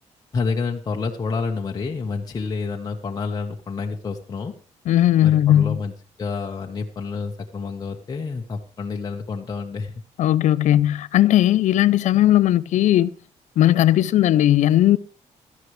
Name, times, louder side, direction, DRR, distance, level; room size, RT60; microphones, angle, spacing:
voice 1, 0.3-4.5 5.2-5.9 6.2-9.9, left 4 dB, 30° left, 1.3 m, -28 dB
voice 2, 4.9-5.8 10.2-13.1 13.6-15.0, left 13 dB, 85° left, 0.6 m, -17 dB
17.5 x 13.0 x 3.3 m
cardioid pair, 150°, 12 cm